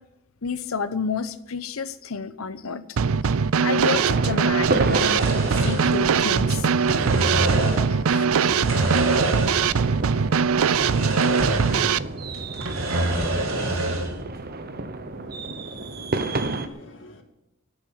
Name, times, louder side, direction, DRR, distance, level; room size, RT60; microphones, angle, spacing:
voice 1, 0.4-3.0 3.6-6.7 7.4-7.5 8.1-8.3, left 5 dB, 90° left, 13 dB, 0.9 m, -30 dB
Drum kit / Snare drum, 3.0-12.0, right 6 dB, 90° right, 0.5 m, -21 dB
sound 1, 3.9-16.7, right 2 dB, 50° right, 1.0 m, -31 dB
sound 2, 4.7-6.4 6.7-7.9 8.4-9.8 10.1-10.2 10.8-12.0 12.3-14.2, right 2 dB, 70° right, 2.4 m, -26 dB
voice 2, 13.6-13.9 14.3-17.2, left 1 dB, 60° left, 4 dB, 2.2 m, -45 dB
11.5 x 9.2 x 9.5 m, 0.89 s
head